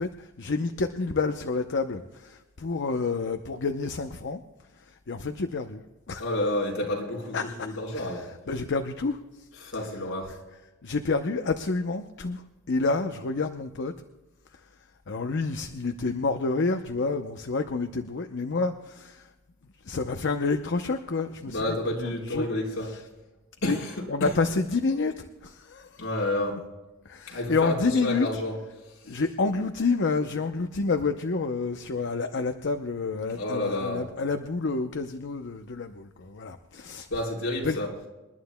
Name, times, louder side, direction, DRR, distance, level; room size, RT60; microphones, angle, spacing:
voice 1, 0.0-4.4 4.8-5.8 6.1-6.2 7.3-9.5 10.8-13.9 15.1-19.3 19.8-21.8 22.0-22.5 22.8-23.0 23.6-23.8 24.1-26.0 27.1-28.3 29.1-37.1 37.6-37.8, left 3 dB, 60° left, 0.7 m, -29 dB
voice 2, 6.2-8.3 9.6-10.3 21.4-22.9 23.6-23.9 24.2-24.3 26.0-26.6 27.3-28.6 29.0-29.2 33.3-34.1 37.1-37.9, left 1 dB, 75° left, 4.3 m, -30 dB
28.0 x 11.5 x 2.2 m
head